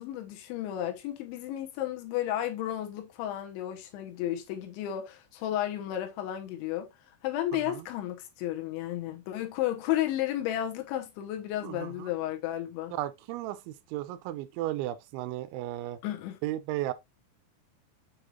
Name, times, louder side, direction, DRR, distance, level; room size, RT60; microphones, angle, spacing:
voice 1, 0.0-6.9 7.2-12.9 16.0-16.4, left 12 dB, 85° left, 3.4 m, -33 dB
voice 2, 11.6-12.1 12.9-16.0 16.4-16.9, right 14 dB, 85° right, 3.0 m, -35 dB
7.7 x 4.9 x 2.5 m
omnidirectional pair, 5.3 m